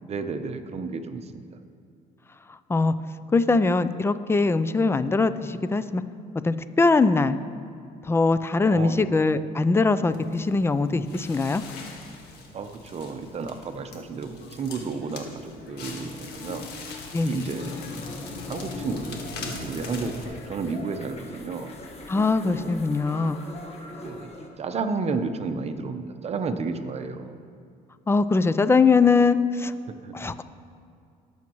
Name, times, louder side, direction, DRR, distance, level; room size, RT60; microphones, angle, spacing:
voice 1, 0.0-1.4 8.6-9.1 12.5-16.7 17.3-17.7 18.5-21.7 22.4-22.7 24.0-24.3 24.6-27.4 29.9-30.1, right 4 dB, 40° right, 8 dB, 0.8 m, -32 dB
voice 2, 3.3-6.0 6.4-7.4 8.1-11.6 17.1-17.5 22.1-23.4 28.1-29.7 30.1-30.4, left 3 dB, 15° left, 13 dB, 0.4 m, -22 dB
Crackle, 10.1-20.2, left 4 dB, 80° left, 1.6 m, -41 dB
sound 1, 17.6-24.5, left 1 dB, 40° left, 1.5 m, -40 dB
19.0 x 7.2 x 3.1 m, 2.4 s
cardioid pair, 110°, 17 cm